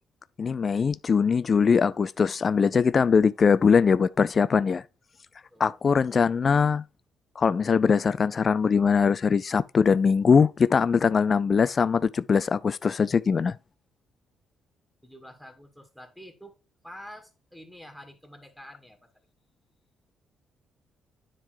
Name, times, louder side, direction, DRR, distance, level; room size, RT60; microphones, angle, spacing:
voice 1, 0.4-4.8 5.6-6.8 7.4-13.6, left 6 dB, 40° left, 0.4 m, -22 dB
voice 2, 15.0-16.5 16.8-19.0, equal, 5° left, 2.2 m, -47 dB
9.9 x 3.8 x 4.6 m
cardioid pair, 90°, 0 cm